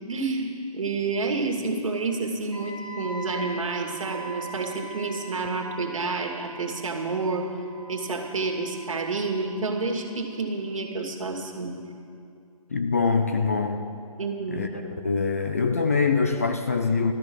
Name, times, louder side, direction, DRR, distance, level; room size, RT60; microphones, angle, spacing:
voice 1, 0.1-7.5 7.9-11.7 14.2-14.6, right 3 dB, 60° right, 0 dB, 2.5 m, -29 dB
Wind instrument woodwind instrument, 2.5-10.4, right 4 dB, 80° left, 2.7 m, -42 dB
voice 2, 12.7-13.9 14.5-14.7 15.0-17.1, left 4 dB, 25° left, 6 dB, 0.4 m, -24 dB
14.0 x 13.0 x 6.2 m, 2.5 s
hypercardioid pair, 170°, 19 cm